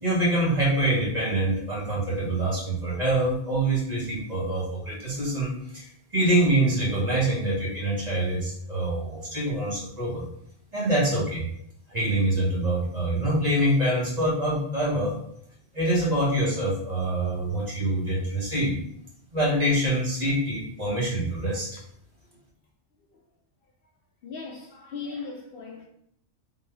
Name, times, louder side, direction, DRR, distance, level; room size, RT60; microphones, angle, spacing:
voice 1, 0.0-10.2 10.7-11.5 11.9-15.2 15.7-18.8 19.3-21.7, right 1 dB, 40° right, 1.3 m, -25 dB
voice 2, 24.2-25.9, left 5 dB, 60° left, 0.7 m, -38 dB
3.7 x 2.6 x 3.3 m
omnidirectional pair, 1.2 m